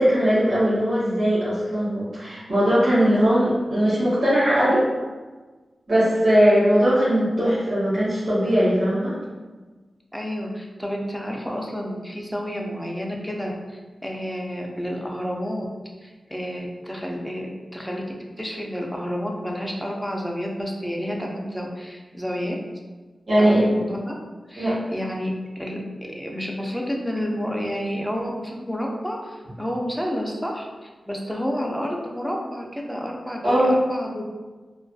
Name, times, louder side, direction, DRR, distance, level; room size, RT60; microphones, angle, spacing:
voice 1, 0.0-4.9 5.9-9.1 23.3-23.7 24.6-24.8 33.4-33.7, equal, 55° right, -11 dB, 1.0 m, -19 dB
voice 2, 10.1-15.7 16.0-17.5 17.7-18.0 18.4-22.6 23.4-24.1 24.5-25.8 26.1-34.2, equal, ahead, -1 dB, 0.3 m, -30 dB
2.5 x 2.3 x 2.2 m, 1.3 s
wide cardioid pair, 130°, 0 cm